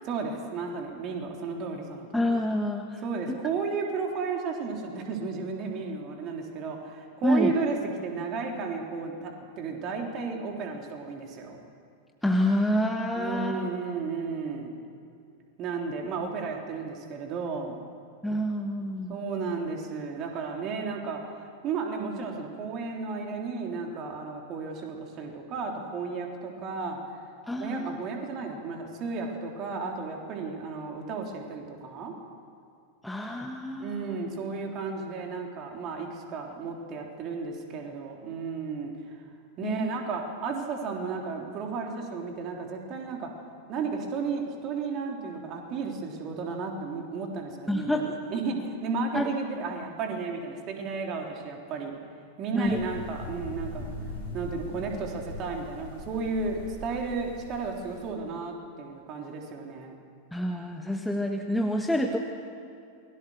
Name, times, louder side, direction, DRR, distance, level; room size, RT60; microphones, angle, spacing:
voice 1, 0.0-2.3 3.0-7.8 8.0-11.6 13.1-14.7 15.6-17.9 19.1-27.0 27.6-32.1 33.8-39.2 39.6-43.3 43.7-52.0 52.4-53.9 54.3-60.0, right 4 dB, 35° right, 1 dB, 3.7 m, -33 dB
voice 2, 2.1-3.0 3.3-3.4 7.2-7.5 12.2-13.7 18.2-19.1 27.5-28.0 33.0-34.2 39.6-39.9 47.7-48.1 49.1-49.3 52.5-52.8 60.3-62.2, left 1 dB, 5° left, 3 dB, 1.6 m, -27 dB
sound 1, 52.6-58.1, left 1 dB, 65° left, 6.2 m, -40 dB
28.5 x 22.5 x 6.6 m, 2.5 s
figure-of-eight pair, 90°, 0 cm